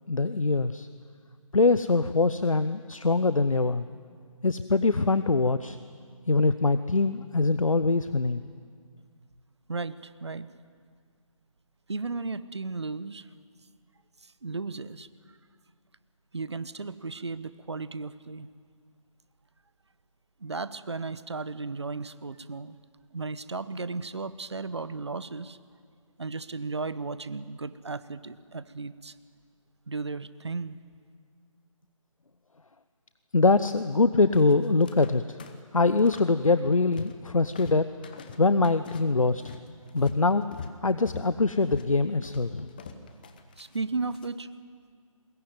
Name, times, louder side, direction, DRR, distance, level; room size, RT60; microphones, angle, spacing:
voice 1, 0.1-0.9 1.5-3.8 4.4-5.8 6.3-8.5 33.3-35.4 35.7-37.9 38.4-39.4 39.9-40.4 40.8-42.7, left 3 dB, 70° left, 13 dB, 0.9 m, -23 dB
voice 2, 9.7-10.5 11.9-13.3 14.4-15.1 16.3-18.5 20.4-22.8 23.1-25.6 26.2-29.1 29.9-30.8 43.6-44.5, right 3 dB, 50° right, 15 dB, 1.0 m, -35 dB
sound 1, 34.3-35.1 35.4-36.3 36.6-37.3 37.5-44.3, left 5 dB, 15° left, 0.8 m, -44 dB
22.0 x 21.0 x 9.4 m, 2.1 s
figure-of-eight pair, 155°, 18 cm